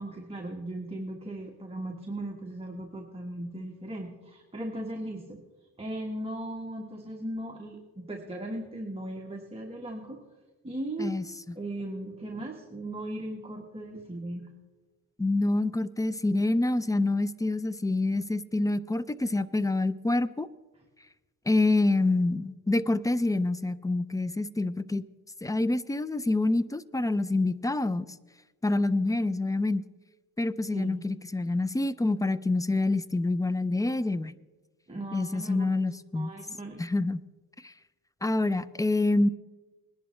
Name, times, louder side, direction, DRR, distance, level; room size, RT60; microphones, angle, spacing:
voice 1, 0.0-10.2 10.6-11.2 11.5-14.5 30.7-31.0 34.9-35.7 36.1-36.8, right 1 dB, 15° right, 1 dB, 1.3 m, -37 dB
voice 2, 15.2-20.5 21.5-25.0 25.4-28.1 28.6-29.8 30.4-34.3 35.1-36.3 36.8-37.2 37.6-37.7 38.2-39.3, left 2 dB, 10° left, 17 dB, 0.3 m, -27 dB
20.0 x 11.0 x 3.2 m, 1.2 s
cardioid pair, 85°, 38 cm